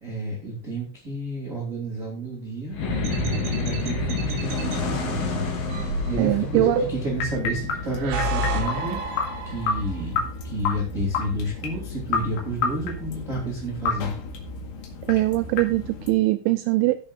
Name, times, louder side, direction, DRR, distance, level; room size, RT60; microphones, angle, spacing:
voice 1, 0.0-2.7 3.6-9.0 9.4-14.1, right 1 dB, 20° right, -4 dB, 2.3 m, -31 dB
sound 1, 2.7-9.3, left 3 dB, 55° left, 4.2 m, -29 dB
sound 2, 3.0-4.8 5.7-7.2 7.8-10.0, right 2 dB, 65° right, 4.2 m, -30 dB
voice 2, 6.2-6.8 15.1-17.0, right 17 dB, 85° right, 10 dB, 2.7 m, -22 dB
sound 3, 7.1-16.1, left 4 dB, 75° left, 4.2 m, -31 dB
19.5 x 7.1 x 2.6 m, 0.36 s
omnidirectional pair, 5.9 m